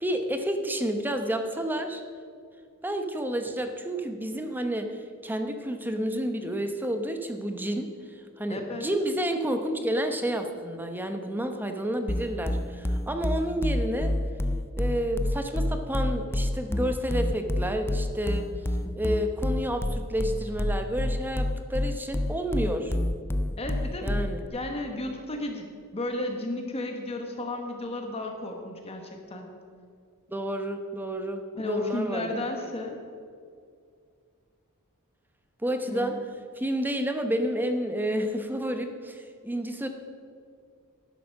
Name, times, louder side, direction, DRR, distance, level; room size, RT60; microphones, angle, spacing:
voice 1, 0.0-2.0 2.8-4.9 5.2-7.9 8.4-14.1 14.8-18.5 19.0-23.0 24.0-24.4 30.3-32.3 35.6-36.2 36.6-39.9, equal, 10° right, 6 dB, 0.9 m, -30 dB
voice 2, 8.5-8.9 23.6-25.7 25.9-29.5 31.5-33.0 35.8-36.1, left 2 dB, 25° left, 3 dB, 1.1 m, -33 dB
sound 1, 12.1-24.5, left 1 dB, 10° left, 0.4 m, -28 dB
11.0 x 11.0 x 6.5 m, 2.3 s
head